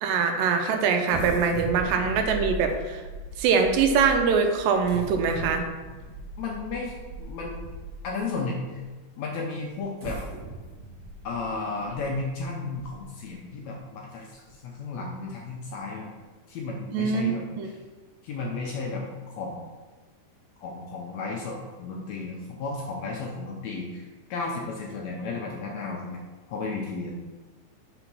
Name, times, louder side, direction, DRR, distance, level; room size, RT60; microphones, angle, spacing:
voice 1, 0.0-3.0 3.4-5.6 16.9-17.3 17.6-17.7, right 5 dB, 85° right, 5 dB, 2.3 m, -23 dB
sound 1, 1.1-8.2 8.8-8.9 9.8-13.3 13.8-13.9 14.3-14.5, right 2 dB, 40° right, 2.3 m, -38 dB
voice 2, 6.4-6.9 7.2-7.6 8.0-8.8 9.2-10.2 11.2-16.1 16.5-17.8 18.2-19.0 19.4-19.6 20.6-26.2 26.5-27.1, left 3 dB, 75° left, -1 dB, 1.6 m, -33 dB
5.7 x 3.9 x 6.0 m, 1.3 s
omnidirectional pair, 3.9 m